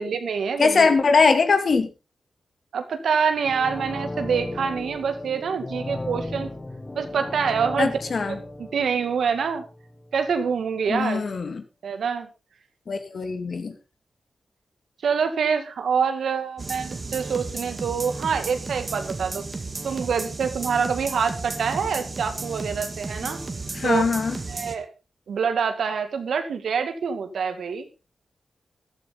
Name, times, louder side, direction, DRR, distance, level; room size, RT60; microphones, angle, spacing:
voice 1, 0.0-0.9 2.7-6.5 6.9-7.9 8.3-9.6 10.1-11.2 11.8-12.3 15.0-19.4 19.8-23.4 23.8-24.2 24.5-24.9 25.3-27.9, right 6 dB, 85° right, 8 dB, 2.2 m, -26 dB
voice 2, 0.6-1.9 7.8-8.4 10.9-11.6 12.9-13.7 23.7-24.4, left 4 dB, 60° left, 7 dB, 2.4 m, -21 dB
sound 1, 3.4-10.2 10.5-10.6, left 2 dB, 25° left, 2.0 m, -36 dB
sound 2, 16.6-24.7, right 3 dB, 40° right, 2.0 m, -34 dB
14.5 x 12.5 x 3.9 m, 0.30 s
cardioid pair, 75°, 0 cm